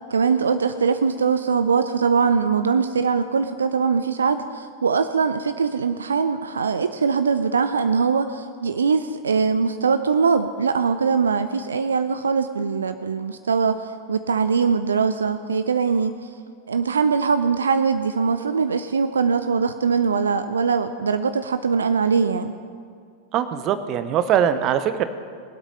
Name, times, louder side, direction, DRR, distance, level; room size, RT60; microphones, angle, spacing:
voice 1, 0.1-13.8 14.1-16.1 16.7-22.5, right 5 dB, 70° right, 10 dB, 0.5 m, -22 dB
voice 2, 23.3-25.0, right 9 dB, 35° right, 11 dB, 0.9 m, -21 dB
20.5 x 8.3 x 5.6 m, 2.2 s
figure-of-eight pair, 90°, 0 cm